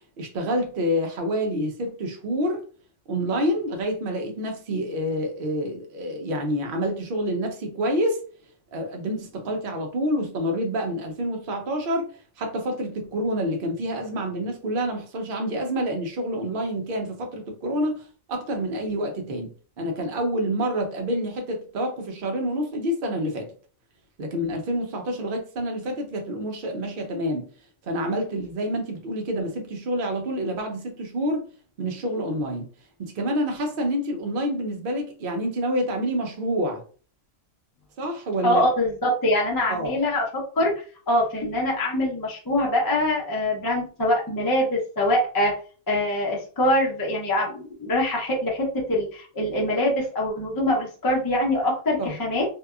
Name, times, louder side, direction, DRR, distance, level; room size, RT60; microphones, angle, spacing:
voice 1, 0.2-2.6 3.1-8.2 8.7-12.1 12.4-23.5 24.2-27.5 27.8-31.5 31.8-32.7 33.0-36.8 38.0-38.6 39.7-40.0 52.0-52.2, equal, 50° right, 0.7 m, -27 dB
voice 2, 38.4-40.2 40.5-45.5 45.9-52.4, left 1 dB, 25° left, 0.5 m, -24 dB
2.7 x 2.2 x 2.3 m
omnidirectional pair, 1.4 m